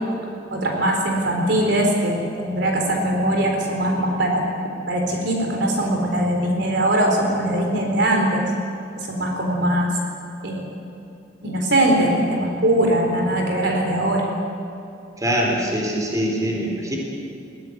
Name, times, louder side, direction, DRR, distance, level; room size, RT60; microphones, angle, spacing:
voice 1, 0.5-4.4 4.9-8.4 9.1-9.9 10.4-10.7 11.4-14.3, right 1 dB, 65° right, 1 dB, 4.0 m, -21 dB
voice 2, 15.2-17.0, equal, 20° right, -1 dB, 4.2 m, -23 dB
21.0 x 17.5 x 9.4 m, 2.7 s
head